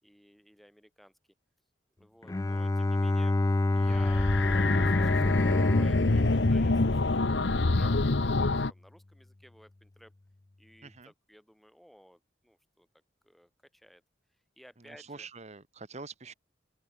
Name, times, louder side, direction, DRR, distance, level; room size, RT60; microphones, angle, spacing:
voice 1, 0.0-1.1 2.0-3.4 3.7-10.1 10.6-12.9 13.2-14.0 14.6-15.3 16.0-16.1, equal, ahead, 7.6 m, -56 dB
Bowed string instrument, 2.2-7.5, left 2 dB, 15° left, 0.3 m, -28 dB
sound 1, 3.8-8.7, left 2 dB, 70° left, 1.0 m, -26 dB
voice 2, 14.9-16.3, right 4 dB, 35° right, 1.4 m, -45 dB
open air
head